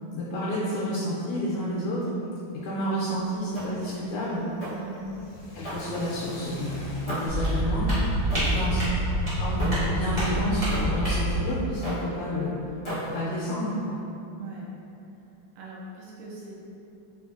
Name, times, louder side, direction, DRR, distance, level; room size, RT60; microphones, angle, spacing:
voice 1, 0.1-2.1 2.6-4.5 5.5-6.8 7.0-8.8 9.4-12.5 12.9-14.0, equal, 90° left, -7 dB, 1.5 m, -30 dB
Car / Accelerating revving vroom, 3.1-9.3, left 1 dB, 70° left, 1.1 m, -42 dB
sound 1, 3.5-3.9 4.6-4.9 5.6-6.3 7.1-7.4 8.3-8.7 9.6-9.9 10.7-11.0 11.8-12.1 12.8-13.3, equal, 35° left, 0.4 m, -35 dB
voice 2, 4.8-5.2 8.4-9.0 14.4-14.7 15.6-16.6, right 2 dB, 85° right, -4 dB, 1.5 m, -41 dB
sound 2, 7.3-11.4, right 1 dB, 55° right, 0.4 m, -26 dB
4.0 x 2.5 x 2.4 m, 2.9 s
omnidirectional pair, 2.4 m